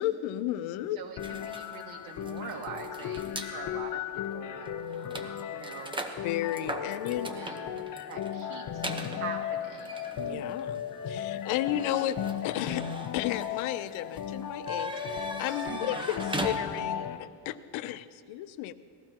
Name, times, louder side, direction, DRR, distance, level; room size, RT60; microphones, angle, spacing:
voice 1, 0.0-1.0 6.2-7.3 10.2-10.8 11.1-12.2 12.4-12.8 13.1-18.7, left 13 dB, 75° left, 13 dB, 0.7 m, -33 dB
voice 2, 1.0-6.0 7.2-7.8 8.1-10.5 15.6-16.1, right 5 dB, 80° right, -1 dB, 2.3 m, -43 dB
sound 1, 1.2-17.2, left 9 dB, 40° left, 0.8 m, -36 dB
sound 2, 1.2-3.5 4.2-4.4 4.6-17.1, right 1 dB, 10° right, 0.9 m, -41 dB
19.5 x 15.0 x 2.9 m, 2.4 s
cardioid pair, 120°, 48 cm